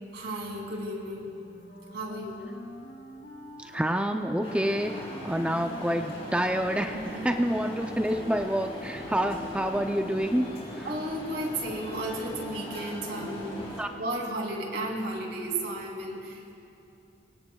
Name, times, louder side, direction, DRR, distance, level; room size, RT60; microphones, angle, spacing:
voice 1, 0.1-1.4 1.9-2.5 6.9-7.3 10.8-13.6 14.0-16.5, right 1 dB, 65° right, -1 dB, 2.8 m, -34 dB
Wind instrument woodwind instrument, 1.2-7.3, equal, 70° left, 2.7 m, -47 dB
voice 2, 3.6-7.0 7.2-10.5 10.8-10.9 13.8-13.9, equal, 5° right, 4 dB, 0.5 m, -28 dB
sound 1, 4.4-13.9, equal, 35° left, 3.5 m, -40 dB
26.0 x 23.5 x 2.3 m, 2.8 s
head